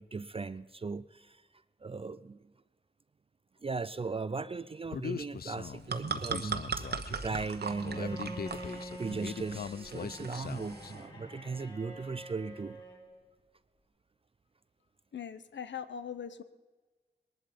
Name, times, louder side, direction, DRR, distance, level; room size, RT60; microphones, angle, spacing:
voice 1, 0.0-1.4 1.8-2.4 3.6-6.9 7.2-12.8, right 4 dB, 30° right, 0.4 m, -38 dB
Human voice, 4.9-10.9, left 7 dB, 60° left, 0.5 m, -41 dB
sound 1, 5.5-11.0, right 5 dB, 65° right, 1.1 m, -39 dB
Bowed string instrument, 7.6-13.1, right 1 dB, 30° left, 6.7 m, -46 dB
voice 2, 15.1-16.4, left 8 dB, 90° left, 0.8 m, -41 dB
20.0 x 11.5 x 5.1 m
wide cardioid pair, 80°, 18 cm